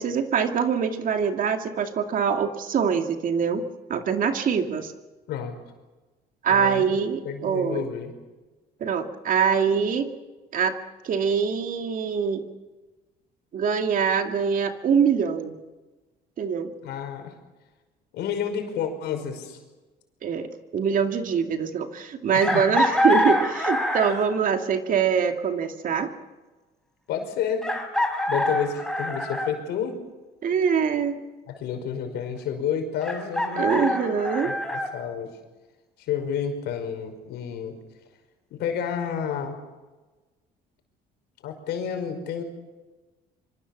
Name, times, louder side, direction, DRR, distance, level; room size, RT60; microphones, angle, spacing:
voice 1, 0.0-3.6 3.9-4.9 6.4-7.9 8.8-10.1 10.5-10.8 11.0-12.4 13.5-15.5 16.4-16.7 20.2-26.1 30.4-31.2 33.6-34.5, right 6 dB, 55° right, 6 dB, 2.4 m, -24 dB
voice 2, 6.5-6.9 7.2-8.1 16.8-17.3 18.1-19.6 22.3-22.6 27.1-27.7 28.3-30.0 31.5-33.9 34.4-35.3 36.1-37.8 38.5-39.6 41.4-42.4, left 7 dB, 80° left, 6 dB, 5.5 m, -30 dB
Chicken rooster, 22.4-24.4 26.0-26.1 27.6-29.5 33.0-34.9, left 1 dB, 5° left, 4.4 m, -25 dB
25.5 x 25.0 x 7.4 m, 1.2 s
cardioid pair, 110°, 17 cm